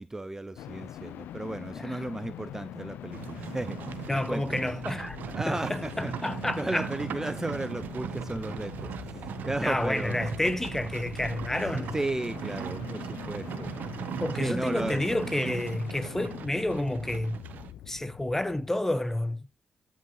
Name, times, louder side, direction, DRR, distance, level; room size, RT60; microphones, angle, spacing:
voice 1, 0.0-4.7 5.3-10.2 11.9-13.7 14.4-15.0, right 2 dB, 15° right, 0.4 m, -35 dB
sound 1, 0.6-19.1, left 12 dB, 85° left, 0.4 m, -43 dB
Livestock farm animals working animals, 3.1-17.7, right 8 dB, 75° right, 0.7 m, -38 dB
voice 2, 4.1-5.2 5.5-6.9 9.6-12.0 14.2-17.4 17.9-19.5, left 1 dB, 10° left, 0.8 m, -30 dB
13.5 x 5.2 x 3.0 m
cardioid pair, 65°, 3 cm